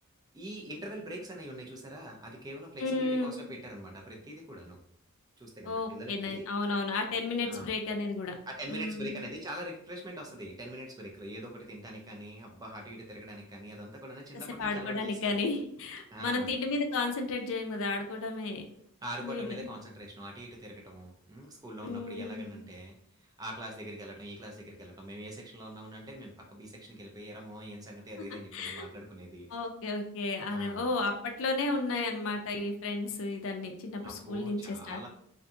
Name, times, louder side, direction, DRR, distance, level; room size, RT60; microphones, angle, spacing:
voice 1, 0.3-4.8 5.4-6.4 7.4-7.7 8.5-15.4 16.1-16.5 19.0-29.5 30.4-30.9 34.0-35.1, right 1 dB, 15° right, 1 dB, 0.4 m, -43 dB
voice 2, 2.8-3.4 5.7-8.3 8.7-9.2 14.6-18.6 19.2-19.6 21.8-22.5 28.5-28.9 29.5-35.0, left 3 dB, 60° left, 4 dB, 0.4 m, -33 dB
2.7 x 2.5 x 2.3 m, 0.69 s
head